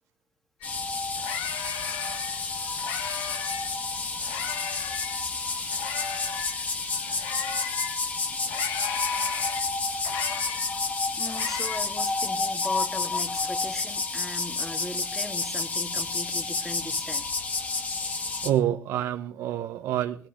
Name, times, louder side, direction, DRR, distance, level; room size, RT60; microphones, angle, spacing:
sound 1, 0.6-0.7 1.0-3.8 4.2-8.0 8.4-11.8, left 10 dB, 85° left, 1.2 m, -37 dB
sound 2, 0.6-18.5, left 3 dB, 30° left, 1.8 m, -30 dB
voice 1, 8.1-8.5 11.2-17.6, left 1 dB, 5° left, 7 dB, 1.7 m, -39 dB
voice 2, 18.4-20.3, right 11 dB, 75° right, 7 dB, 0.8 m, -27 dB
19.5 x 16.0 x 3.1 m, 0.42 s
cardioid pair, 90°, 5 cm